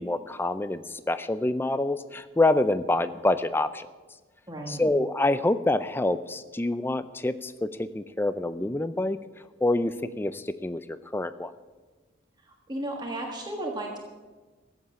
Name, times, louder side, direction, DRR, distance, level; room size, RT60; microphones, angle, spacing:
voice 1, 0.0-3.9 4.7-9.2 9.6-11.5, left 2 dB, 10° left, 13 dB, 0.4 m, -26 dB
voice 2, 4.5-4.8 12.5-14.0, right 1 dB, 20° right, 0 dB, 1.5 m, -34 dB
15.0 x 8.0 x 8.3 m, 1.3 s
head